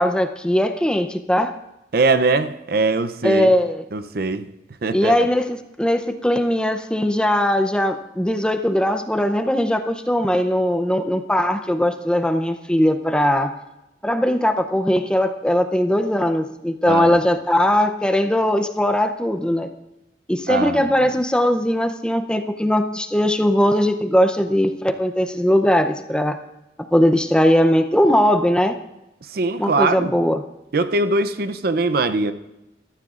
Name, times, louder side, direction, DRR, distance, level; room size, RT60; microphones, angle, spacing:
voice 1, 0.0-1.5 3.2-3.8 4.9-13.5 14.0-19.7 20.3-26.4 26.9-28.8 29.6-30.4, equal, 5° left, 0.6 m, -19 dB
voice 2, 1.9-3.5 3.9-4.5 4.8-5.3 16.8-17.2 20.5-20.9 29.3-30.1 30.7-32.3, right 3 dB, 55° right, 0.6 m, -21 dB
21.0 x 13.5 x 2.5 m
head